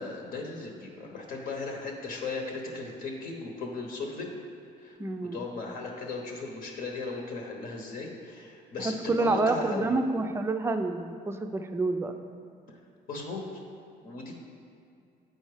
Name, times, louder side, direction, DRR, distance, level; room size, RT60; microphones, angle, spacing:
voice 1, 0.0-4.4 4.8-5.0 5.2-10.0 12.7-12.8 13.1-13.6 14.0-14.3, left 3 dB, 60° left, 1 dB, 1.0 m, -37 dB
voice 2, 5.0-5.4 8.8-12.1, right 3 dB, 15° right, 6 dB, 0.4 m, -28 dB
7.9 x 4.2 x 4.9 m, 2.6 s
cardioid pair, 110°, 17 cm